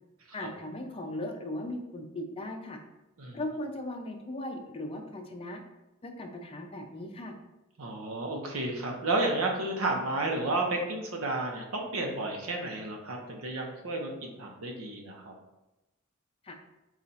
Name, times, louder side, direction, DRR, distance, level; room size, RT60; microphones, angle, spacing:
voice 1, 0.3-2.8 3.3-5.6 6.0-7.3 16.4-16.5, left 1 dB, 25° left, 3 dB, 0.5 m, -38 dB
voice 2, 7.8-15.3, right 2 dB, 80° right, 2 dB, 0.8 m, -32 dB
4.3 x 2.4 x 4.0 m, 0.95 s
head